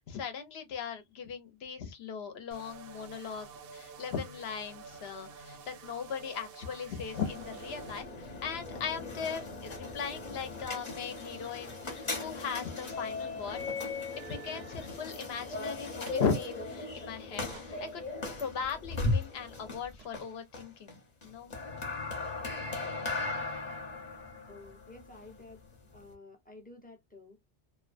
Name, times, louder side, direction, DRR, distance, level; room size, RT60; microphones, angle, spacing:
voice 1, 0.1-3.5 3.7-13.6 14.2-18.0 18.4-21.5, left 6 dB, 70° left, 0.9 m, -38 dB
sound 1, 2.5-8.0, right 4 dB, 65° right, 0.7 m, -49 dB
sound 2, 7.1-26.1, left 3 dB, 40° left, 0.9 m, -38 dB
sound 3, 13.6-13.8 14.2-14.4 14.8-15.4 16.1-16.2 17.5-17.7 18.3-18.4 18.9-19.1 19.3-19.4 19.6-19.7 20.0-20.2, right 6 dB, 90° right, 1.0 m, -54 dB
voice 2, 24.4-25.6 25.9-27.4, left 2 dB, 10° left, 0.5 m, -52 dB
2.4 x 2.2 x 2.4 m
omnidirectional pair, 1.1 m